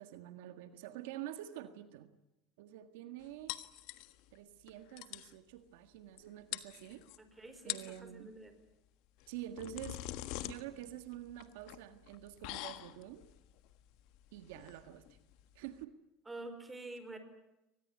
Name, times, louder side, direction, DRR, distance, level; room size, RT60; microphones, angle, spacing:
voice 1, 0.0-2.1 2.6-3.5 4.3-7.0 7.6-8.3 9.3-10.0 10.4-13.2 14.3-15.2 15.5-15.9, right 12 dB, 80° right, 9 dB, 1.7 m, -47 dB
tasting the soup, 3.5-4.4 4.7-4.8 5.0-5.3 6.2-6.3 6.5-7.2 7.6-8.0 9.2-15.8, left 16 dB, 65° left, 1.4 m, -45 dB
voice 2, 7.2-8.5 16.3-17.2, right 2 dB, 10° right, 9 dB, 4.7 m, -48 dB
24.5 x 19.5 x 9.7 m, 0.91 s
supercardioid pair, 120°, 0 cm